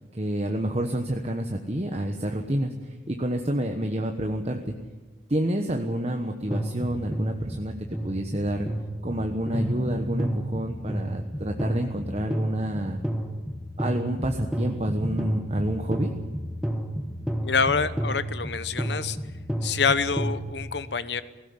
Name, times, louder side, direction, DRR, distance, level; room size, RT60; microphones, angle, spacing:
voice 1, 0.1-4.7 5.3-8.7 9.0-13.0 13.8-16.1, right 1 dB, 35° right, 4 dB, 1.2 m, -28 dB
sound 1, 6.5-20.5, equal, 5° right, 1.5 m, -31 dB
voice 2, 17.4-19.2 19.6-21.2, left 5 dB, 70° left, 14 dB, 1.0 m, -26 dB
19.0 x 17.0 x 9.7 m, 1.3 s
head